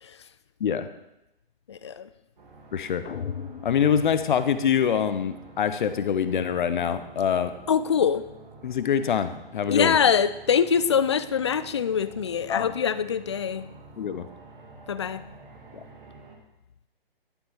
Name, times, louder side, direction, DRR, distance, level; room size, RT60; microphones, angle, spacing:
voice 1, 1.7-2.1 7.7-8.2 9.7-13.7 14.9-15.2, left 7 dB, 30° left, 0.3 m, -24 dB
sound 1, 2.4-16.4, right 3 dB, 55° right, 2.8 m, -49 dB
voice 2, 2.7-3.0 3.6-7.5 8.6-10.0 12.5-12.7 14.0-14.3, left 8 dB, 55° left, 0.9 m, -25 dB
sound 2, 3.0-5.2, left 7 dB, 85° left, 0.7 m, -38 dB
11.5 x 7.6 x 5.3 m
hypercardioid pair, 145°, 30 cm